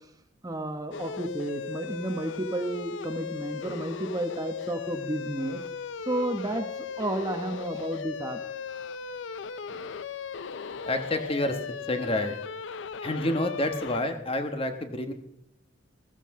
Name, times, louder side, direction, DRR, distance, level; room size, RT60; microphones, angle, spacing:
voice 1, 0.4-5.6 6.1-6.7 7.0-8.4 9.7-9.8, right 1 dB, 20° right, 7 dB, 1.0 m, -32 dB
sound 1, 0.9-14.0, left 6 dB, 70° left, 0.4 m, -37 dB
voice 2, 10.9-11.6 11.9-12.4 13.0-15.1, left 1 dB, 30° left, 7 dB, 1.2 m, -28 dB
16.0 x 14.0 x 3.7 m, 0.74 s
head